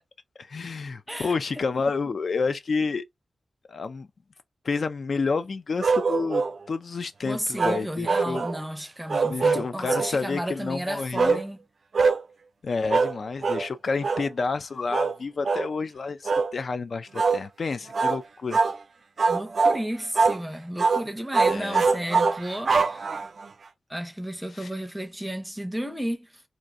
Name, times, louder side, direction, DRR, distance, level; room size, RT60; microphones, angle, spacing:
voice 1, 0.4-3.0 3.7-4.1 4.6-8.4 9.2-11.4 12.6-18.6 21.5-21.9 24.5-24.7, left 4 dB, 55° left, 0.3 m, -29 dB
sound 1, 5.8-6.6 7.6-8.6 9.1-10.1 11.2-11.4 11.9-12.2 12.9-13.2 13.4-13.7 14.0-14.3 14.9-15.1 15.4-15.7 16.2-16.5 17.1-17.4 17.9-18.2 18.5-18.8 19.2-19.8 20.1-20.4 20.8-21.0 21.3-23.5, right 4 dB, 55° right, 0.3 m, -23 dB
voice 2, 7.2-11.6 19.3-23.2 23.9-26.3, equal, 5° right, 0.6 m, -33 dB
4.4 x 2.5 x 2.4 m
wide cardioid pair, 165°, 0 cm